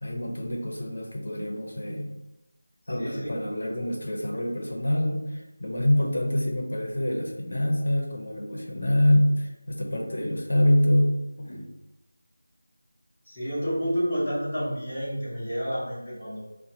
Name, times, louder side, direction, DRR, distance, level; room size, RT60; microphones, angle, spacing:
voice 1, 0.0-2.1 2.9-11.7, left 1 dB, 65° left, 1 dB, 0.8 m, -26 dB
voice 2, 2.8-3.4 5.9-6.0 13.2-16.4, equal, 10° left, -19 dB, 1.0 m, -30 dB
3.9 x 2.2 x 2.8 m, 0.96 s
figure-of-eight pair, 175°, 0 cm